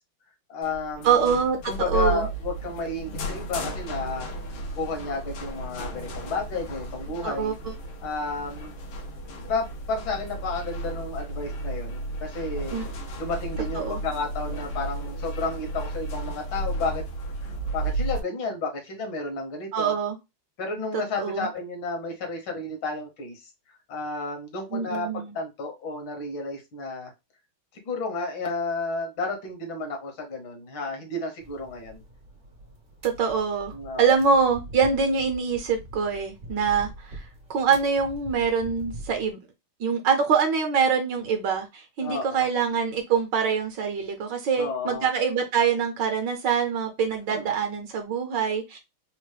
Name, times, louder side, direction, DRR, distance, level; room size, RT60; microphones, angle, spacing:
voice 1, 0.5-1.3 1.6-4.3 4.8-7.6 8.0-8.7 9.5-12.8 13.2-17.0 17.4-20.0 20.6-27.1 27.7-32.0 33.7-34.1 42.0-42.5 44.5-45.1 47.3-47.5, left 3 dB, 70° left, 2 dB, 1.8 m, -32 dB
sound 1, 0.6-18.2, right 2 dB, 90° left, 1.7 m, -34 dB
voice 2, 1.0-2.3 7.2-7.7 12.7-12.9 13.8-14.0 19.7-20.2 21.2-21.5 24.7-25.2 33.0-37.2 37.5-39.4 39.8-48.8, right 6 dB, 70° right, 5 dB, 1.3 m, -24 dB
sound 2, 31.4-39.3, right 1 dB, 40° right, 0.6 m, -43 dB
4.2 x 2.0 x 3.2 m, 0.23 s
omnidirectional pair, 2.3 m